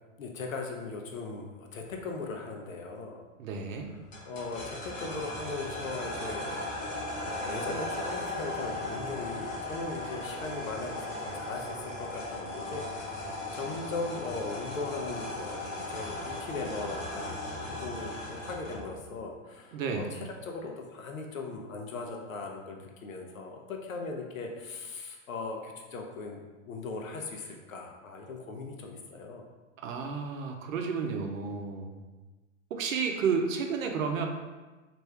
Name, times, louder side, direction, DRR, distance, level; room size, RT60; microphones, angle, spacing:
voice 1, 0.2-3.2 4.2-6.5 7.2-26.4 26.7-29.4, left 3 dB, 90° left, 2 dB, 0.6 m, -39 dB
voice 2, 3.4-3.9 19.7-20.1 29.8-32.0 32.7-34.3, right 5 dB, 80° right, 3 dB, 0.6 m, -31 dB
sound 1, 4.1-19.0, left 1 dB, 20° left, 0.8 m, -37 dB
3.2 x 2.6 x 3.3 m, 1.2 s
hypercardioid pair, 105°, 40 cm